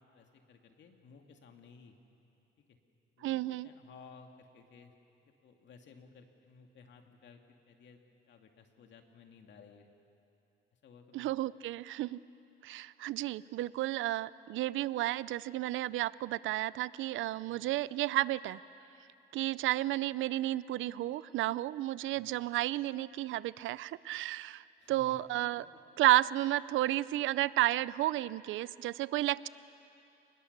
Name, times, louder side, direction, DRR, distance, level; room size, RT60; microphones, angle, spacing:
voice 1, 0.0-2.0 2.6-2.8 3.2-4.9 5.2-9.9 10.8-11.3 17.5-17.7 22.1-22.4 24.8-25.2 25.6-25.8, left 5 dB, 65° left, 4 dB, 2.3 m, -57 dB
voice 2, 3.2-3.7 11.1-12.2 12.6-18.6 19.3-25.6 26.0-29.5, right 15 dB, 85° right, 19 dB, 0.5 m, -32 dB
28.5 x 20.5 x 6.7 m, 2.7 s
cardioid pair, 90°, 20 cm